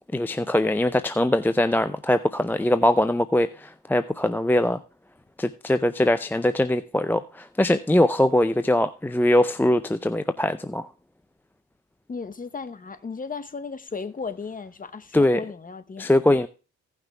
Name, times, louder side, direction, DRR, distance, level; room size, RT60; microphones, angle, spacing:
voice 1, 0.1-4.8 5.4-10.9 15.1-15.4 16.0-16.5, left 1 dB, 5° left, 0.5 m, -22 dB
voice 2, 12.1-16.1, left 5 dB, 30° left, 1.1 m, -35 dB
16.0 x 6.0 x 3.4 m
cardioid pair, 90°, 30 cm